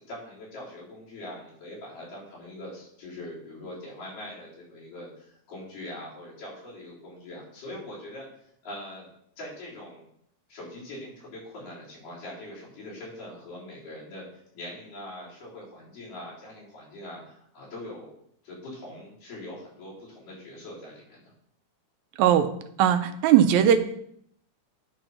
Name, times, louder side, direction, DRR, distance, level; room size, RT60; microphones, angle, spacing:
voice 1, 0.1-8.3 8.6-9.1 9.4-10.1 10.5-14.3 14.5-18.1 18.4-21.3, left 1 dB, 90° left, -8 dB, 5.4 m, -42 dB
voice 2, 22.2-22.5 22.8-23.8, right 10 dB, 75° right, 8 dB, 1.8 m, -19 dB
10.5 x 3.9 x 5.8 m, 0.69 s
omnidirectional pair, 3.7 m